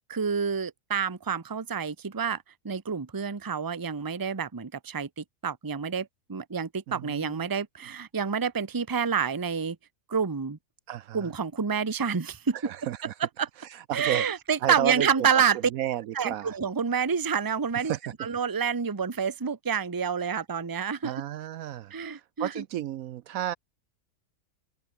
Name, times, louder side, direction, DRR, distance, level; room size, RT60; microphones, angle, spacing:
voice 1, 0.0-9.8 10.1-10.6 11.1-12.6 13.4-13.5 13.9-15.6 16.1-17.9 18.2-21.2 21.9-22.6, right 6 dB, 20° right, 0.7 m, -28 dB
voice 2, 6.9-7.5 10.9-11.3 12.5-13.1 13.6-14.3 14.6-16.6 17.7-18.1 21.0-23.5, right 12 dB, 70° right, 1.0 m, -33 dB
open air
omnidirectional pair, 1.6 m